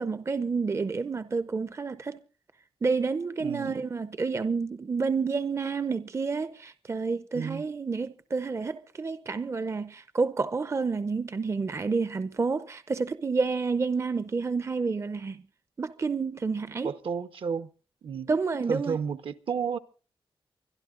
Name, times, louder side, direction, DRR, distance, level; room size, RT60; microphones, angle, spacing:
voice 1, 0.0-2.2 2.8-15.4 15.8-16.9 18.3-19.0, right 4 dB, 30° right, 0.6 m, -29 dB
voice 2, 3.4-3.8 7.3-7.6 16.8-17.7 18.0-18.3 18.7-19.8, right 6 dB, 65° right, 0.9 m, -32 dB
24.5 x 11.0 x 3.8 m
wide cardioid pair, 145°, 10 cm